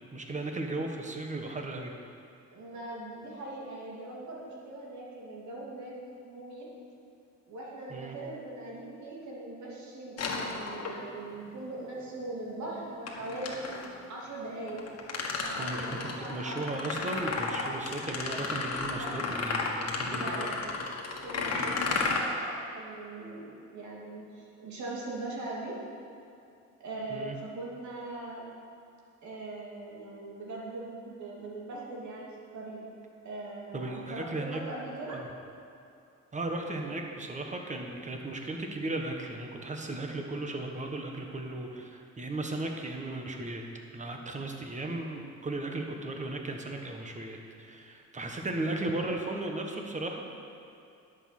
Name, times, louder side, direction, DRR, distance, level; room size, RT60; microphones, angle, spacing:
voice 1, 0.0-1.9 7.9-8.2 15.6-20.5 27.1-27.4 33.7-34.6 35.1-35.3 36.3-43.6 43.9-50.2, right 2 dB, 25° right, 2 dB, 1.4 m, -36 dB
voice 2, 2.5-5.9 6.2-6.7 7.5-13.7 14.1-14.8 15.4-16.9 18.8-19.1 20.1-20.5 21.2-25.8 26.8-28.4 29.2-32.8 33.2-35.2, right 2 dB, 70° right, -4 dB, 2.8 m, -41 dB
sound 1, 10.2-11.3 13.1-13.9 14.7-22.2, left 4 dB, 55° left, 1.6 m, -33 dB
11.0 x 7.5 x 6.1 m, 2.6 s
cardioid pair, 90°, 30 cm